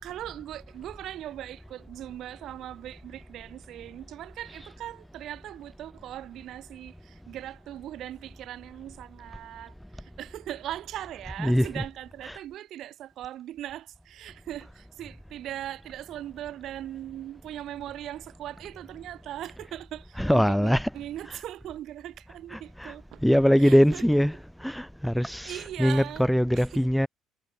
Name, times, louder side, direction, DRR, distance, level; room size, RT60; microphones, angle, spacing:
voice 1, 0.0-23.2 23.6-24.0 25.3-26.3 26.6-26.8, right 12 dB, 55° right, 3.6 m, -39 dB
voice 2, 11.4-11.8 12.2-12.4 20.2-20.9 22.5-22.9 23.2-27.1, equal, ahead, 0.4 m, -23 dB
cardioid pair, 155°, 0 cm